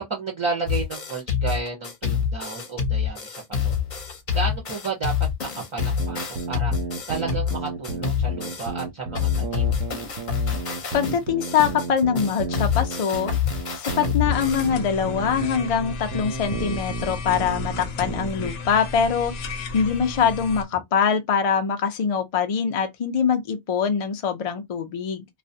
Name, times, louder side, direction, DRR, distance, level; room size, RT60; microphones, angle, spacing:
voice 1, 0.0-3.7 4.3-5.1 5.4-6.7 7.1-9.7, right 4 dB, 40° right, 0.4 m, -32 dB
sound 1, 0.7-8.8 9.1-14.7, left 8 dB, 50° left, 0.7 m, -27 dB
sound 2, 5.8-18.5, right 4 dB, 90° right, 0.9 m, -33 dB
voice 2, 10.9-13.3 13.8-19.3 19.7-25.2, left 7 dB, 65° left, 0.3 m, -23 dB
sound 3, 14.3-20.7, left 4 dB, 80° left, 0.9 m, -34 dB
2.3 x 2.1 x 2.6 m
omnidirectional pair, 1.2 m